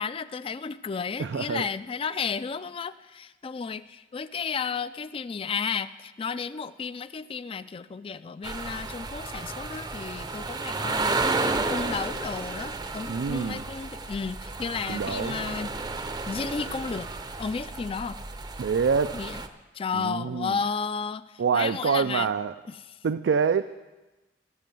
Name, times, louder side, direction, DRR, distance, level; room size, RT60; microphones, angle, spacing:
voice 1, 0.0-15.7 16.3-17.1 17.4-18.2 19.1-19.4 19.7-22.3, left 5 dB, 30° left, 15 dB, 0.3 m, -33 dB
voice 2, 1.2-1.7 13.1-13.6 14.9-15.4 18.6-19.2 19.9-20.6 21.4-22.5 23.0-23.6, right 6 dB, 75° right, 11 dB, 0.4 m, -26 dB
sound 1, 8.4-19.5, right 3 dB, 25° right, 0.6 m, -32 dB
16.0 x 5.7 x 7.6 m, 1.1 s
head